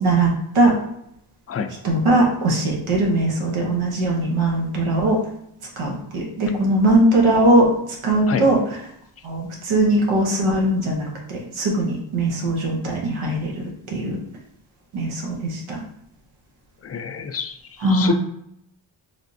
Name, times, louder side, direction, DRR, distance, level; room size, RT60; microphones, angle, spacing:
voice 1, 0.0-0.7 1.8-5.2 5.8-7.6 8.0-8.6 9.2-13.6 13.9-14.2 14.9-15.8 17.8-18.1, right 2 dB, 85° right, -2 dB, 0.9 m, -20 dB
voice 2, 16.8-18.1, left 7 dB, 35° left, 8 dB, 0.4 m, -27 dB
3.4 x 3.0 x 2.6 m, 0.75 s
cardioid pair, 60°, 48 cm